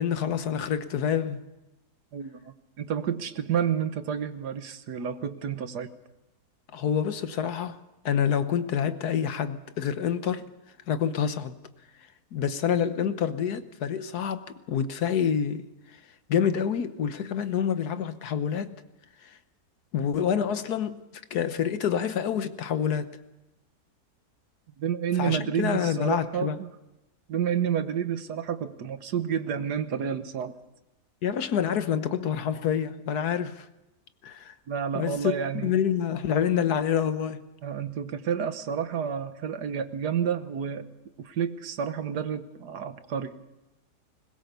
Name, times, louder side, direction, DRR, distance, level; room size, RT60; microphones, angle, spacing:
voice 1, 0.0-1.4 6.7-7.8 8.0-10.5 10.9-11.6 12.3-15.7 16.3-18.8 19.2-19.4 19.9-21.0 21.3-23.1 25.2-26.6 31.2-33.7 34.2-34.5 34.9-35.3 35.6-37.4, left 8 dB, 75° left, 1.5 m, -27 dB
voice 2, 2.1-5.9 24.8-26.7 27.3-30.5 34.7-35.7 37.6-40.9 41.2-43.3, right 8 dB, 80° right, 1.7 m, -30 dB
21.5 x 20.5 x 6.9 m
omnidirectional pair, 1.7 m